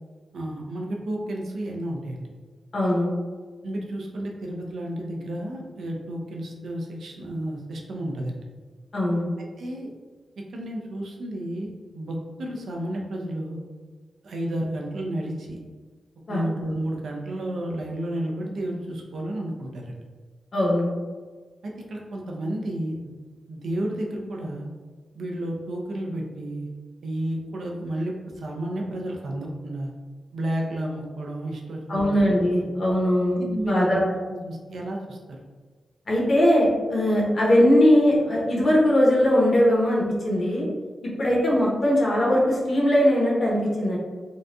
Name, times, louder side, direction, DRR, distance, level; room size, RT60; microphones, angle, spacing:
voice 1, 0.3-2.3 3.6-8.4 9.4-9.9 10.5-13.6 14.2-15.6 16.3-20.0 21.6-23.1 23.5-24.7 25.1-26.7 27.0-29.9 30.3-32.2 32.6-32.7 33.4-34.0 34.3-35.2, right 1 dB, 80° right, -1 dB, 0.5 m, -31 dB
voice 2, 2.7-3.1 8.9-9.3 16.3-16.4 20.5-21.0 31.9-34.0 36.1-40.7 41.2-44.0, left 1 dB, 50° left, -4 dB, 1.0 m, -20 dB
3.8 x 2.2 x 2.6 m, 1.4 s
wide cardioid pair, 105°, 0 cm